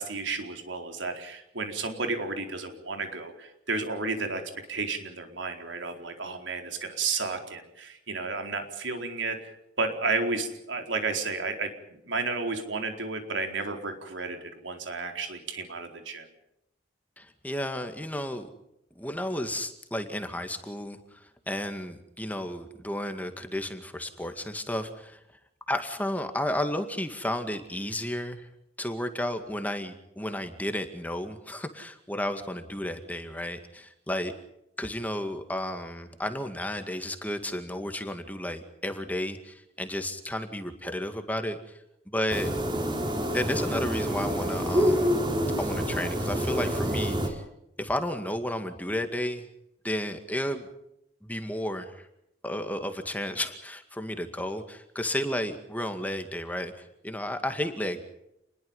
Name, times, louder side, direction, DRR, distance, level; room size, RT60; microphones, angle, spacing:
voice 1, 0.0-4.4 4.7-9.4 9.8-11.7 12.1-16.3, right 3 dB, 85° right, 5 dB, 4.3 m, -32 dB
voice 2, 17.2-18.5 19.0-25.2 25.7-28.5 28.8-34.3 34.8-41.8 42.1-42.5 43.3-45.1 45.6-47.4 47.8-49.5 49.8-50.7 51.2-52.1 52.4-58.0, left 1 dB, 10° left, 7 dB, 2.1 m, -32 dB
sound 1, 42.3-47.3, equal, 25° right, 4.5 m, -27 dB
28.5 x 21.5 x 5.6 m, 0.83 s
head